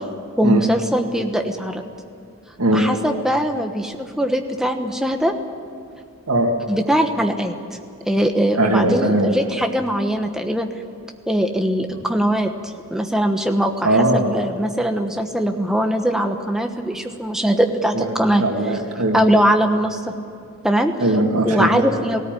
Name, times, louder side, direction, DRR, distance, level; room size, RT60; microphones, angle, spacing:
voice 1, 0.4-1.8 2.7-5.3 6.7-7.5 8.1-10.7 11.3-12.5 12.9-18.4 19.1-20.1 20.6-20.9 21.4-22.2, equal, ahead, 4 dB, 1.1 m, -21 dB
voice 2, 8.6-9.3 13.8-14.4 17.9-18.1 18.4-19.2 21.0-21.9, right 1 dB, 90° right, 1 dB, 2.5 m, -19 dB
18.5 x 17.0 x 9.2 m, 2.5 s
head